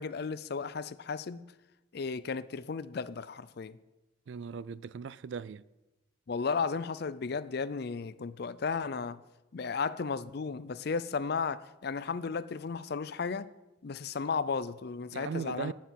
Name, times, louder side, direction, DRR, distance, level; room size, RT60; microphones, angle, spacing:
voice 1, 0.0-1.4 1.9-3.8 6.3-9.2 9.5-13.5 13.8-15.7, left 5 dB, 55° left, 0.5 m, -34 dB
voice 2, 4.3-5.6 15.1-15.7, right 6 dB, 65° right, 0.4 m, -38 dB
10.5 x 7.2 x 7.4 m
head